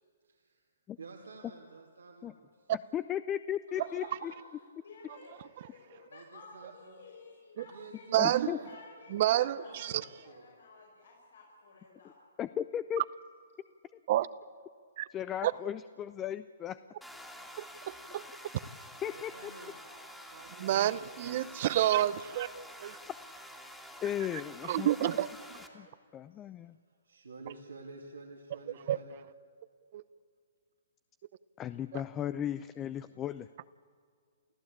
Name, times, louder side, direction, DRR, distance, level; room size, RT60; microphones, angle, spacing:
voice 1, 0.2-0.6 1.0-2.7 6.1-7.0 7.6-8.8 9.1-10.5 19.0-19.8 20.3-21.1 26.6-29.1, right 4 dB, 85° right, 0 dB, 2.7 m, -51 dB
voice 2, 2.9-4.3 8.2-8.6 12.4-13.0 15.1-16.8 19.0-19.7 23.1-23.2 24.0-25.1 25.7-25.9 26.1-26.8 31.6-33.5, left 10 dB, 20° left, 14 dB, 0.5 m, -36 dB
voice 3, 3.7-12.2 26.3-26.4, left 4 dB, 75° left, -3 dB, 6.2 m, -54 dB
voice 4, 8.1-8.5 9.1-9.9 14.1-14.3 15.0-15.1 15.4-15.5 17.6-18.2 20.6-22.5 22.8-23.0 24.7-25.3 28.9-29.0 29.9-30.0, right 13 dB, 50° right, 16 dB, 0.7 m, -29 dB
sound 1, 17.0-25.7, equal, 5° left, 2.3 m, -49 dB
29.0 x 15.0 x 8.6 m, 2.1 s
hypercardioid pair, 135°, 0 cm